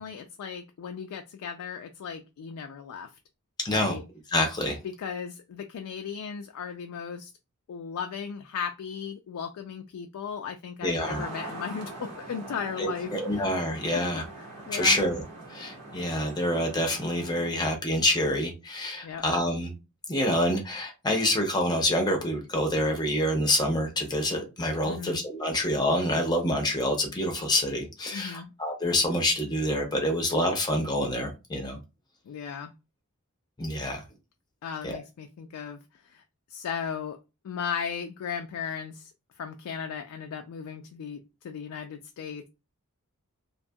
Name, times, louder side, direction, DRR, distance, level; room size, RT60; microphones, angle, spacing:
voice 1, 0.0-3.1 3.7-4.0 4.8-7.3 7.7-13.4 13.9-14.0 14.4-15.0 19.0-19.2 24.8-25.2 28.1-28.5 32.3-32.7 34.6-36.2 36.5-37.2 37.4-39.1 39.4-42.5, left 7 dB, 75° left, 6 dB, 0.3 m, -36 dB
voice 2, 3.6-4.0 4.3-4.8 10.8-11.2 12.8-14.2 14.7-15.2 15.5-19.7 20.1-31.8 33.6-34.0 34.8-35.0, left 1 dB, 20° left, 3 dB, 0.5 m, -27 dB
sound 1, 11.0-17.5, right 2 dB, 90° right, 1.0 m, -42 dB
2.5 x 2.3 x 2.6 m, 0.27 s
head